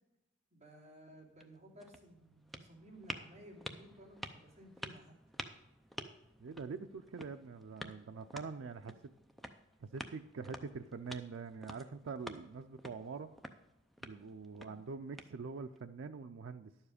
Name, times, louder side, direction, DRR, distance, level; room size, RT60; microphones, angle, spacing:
voice 1, 0.5-5.1 14.5-14.8, right 1 dB, 35° right, -4 dB, 2.7 m, -56 dB
sound 1, 1.3-15.8, equal, ahead, 0.5 m, -51 dB
voice 2, 6.4-8.9 9.8-13.3 14.0-16.7, right 4 dB, 85° right, 7 dB, 0.4 m, -44 dB
11.5 x 7.2 x 4.9 m, 0.92 s
head